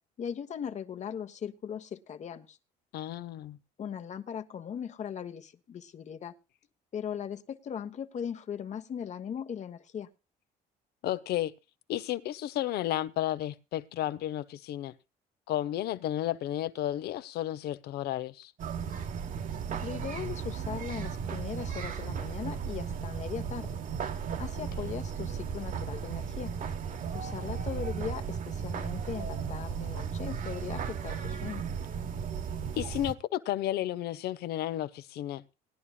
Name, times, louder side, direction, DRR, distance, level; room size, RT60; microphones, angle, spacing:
voice 1, 0.2-2.6 3.8-6.4 6.9-10.1 19.8-23.8 24.4-26.5 27.1-31.7, left 8 dB, 45° left, 1.2 m, -39 dB
voice 2, 2.9-3.6 11.0-11.5 11.9-14.9 15.5-18.5 32.7-35.4, left 13 dB, 70° left, 0.8 m, -32 dB
sound 1, 18.6-33.1, right 7 dB, 50° right, 1.1 m, -35 dB
19.5 x 11.0 x 2.4 m
cardioid pair, 110°, 17 cm